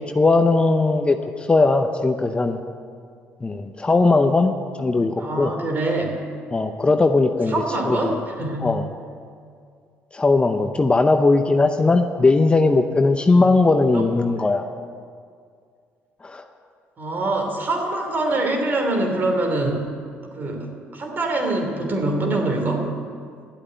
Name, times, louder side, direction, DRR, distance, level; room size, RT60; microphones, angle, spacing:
voice 1, 0.0-2.6 3.4-4.5 4.8-5.5 6.5-8.2 8.6-8.9 10.1-14.6 16.2-16.4, left 3 dB, 20° left, 7 dB, 0.8 m, -19 dB
voice 2, 5.2-6.2 7.5-8.8 13.9-14.0 17.0-20.0 20.3-22.9, right 2 dB, 40° right, 2 dB, 3.0 m, -24 dB
12.5 x 8.3 x 9.3 m, 2.2 s
cardioid pair, 85°, 5 cm